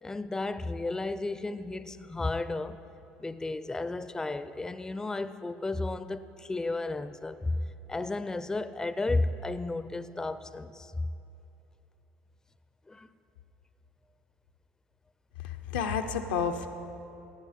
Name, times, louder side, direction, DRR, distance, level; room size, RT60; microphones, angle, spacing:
voice 1, 0.0-2.8 3.2-11.1 12.9-13.1, left 2 dB, 15° left, 13 dB, 0.4 m, -33 dB
voice 2, 15.4-16.7, left 6 dB, 90° left, 6 dB, 0.6 m, -30 dB
15.5 x 9.1 x 4.2 m, 2.9 s
hypercardioid pair, 75°, 5 cm